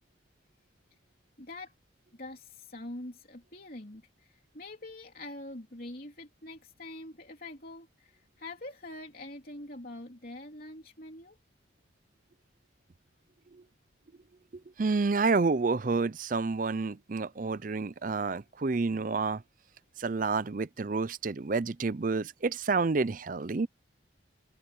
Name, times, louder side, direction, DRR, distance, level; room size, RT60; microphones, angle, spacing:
voice 1, 1.4-1.7 2.1-11.4, left 2 dB, 50° left, 3.4 m, -44 dB
voice 2, 14.8-19.4 20.0-23.7, right 4 dB, 45° right, 0.5 m, -29 dB
open air
head